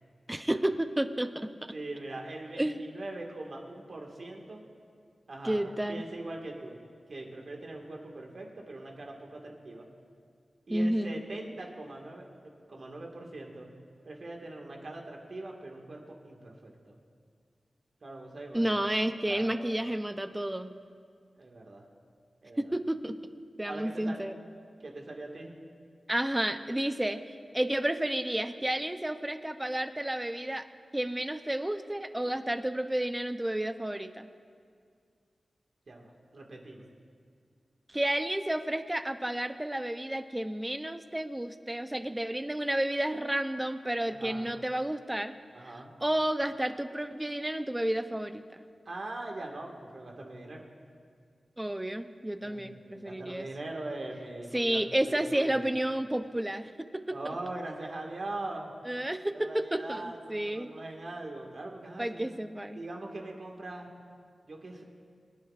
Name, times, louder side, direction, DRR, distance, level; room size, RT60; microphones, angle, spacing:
voice 1, 0.3-1.5 2.6-2.8 5.4-6.0 10.7-11.1 18.5-20.7 22.6-23.2 23.6-24.3 26.1-30.6 30.9-34.3 37.9-45.3 46.0-48.4 51.6-53.5 54.5-57.2 58.9-60.7 62.0-62.8, right 1 dB, 10° right, 9 dB, 0.5 m, -31 dB
voice 2, 1.7-4.6 5.3-6.8 7.1-9.9 10.7-12.3 12.7-13.7 14.0-17.0 18.0-18.9 19.2-19.8 21.4-21.8 22.4-22.6 23.6-24.2 24.8-25.6 35.9-36.9 44.1-44.5 45.5-45.9 48.9-50.6 52.4-55.5 57.1-58.7 59.3-62.3 62.7-63.9 64.4-64.8, right 2 dB, 55° right, 1 dB, 1.8 m, -41 dB
23.5 x 10.5 x 2.5 m, 2.1 s
wide cardioid pair, 100°, 0 cm